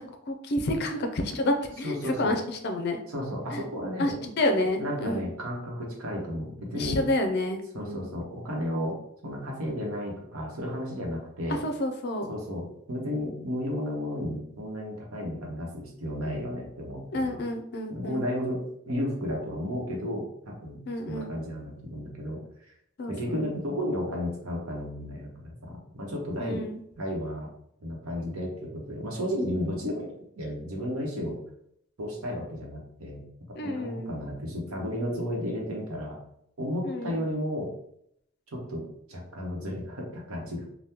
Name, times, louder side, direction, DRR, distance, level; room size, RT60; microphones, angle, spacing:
voice 1, 0.3-3.0 3.5-3.6 4.0-5.3 6.8-8.0 11.6-12.3 17.1-18.3 20.9-21.3 23.0-23.4 26.4-26.8 33.6-34.1 36.8-37.2, left 1 dB, 50° left, 5 dB, 0.4 m, -29 dB
voice 2, 1.8-2.4 3.1-4.2 4.8-7.0 7.7-9.0 9.2-11.6 12.3-17.4 17.9-20.8 21.1-22.4 23.1-26.6 27.0-27.5 27.8-31.4 32.0-33.2 33.6-36.2 36.6-37.7 38.5-38.8 39.1-40.6, equal, 90° right, -1 dB, 0.9 m, -33 dB
3.5 x 2.2 x 2.8 m, 0.73 s
head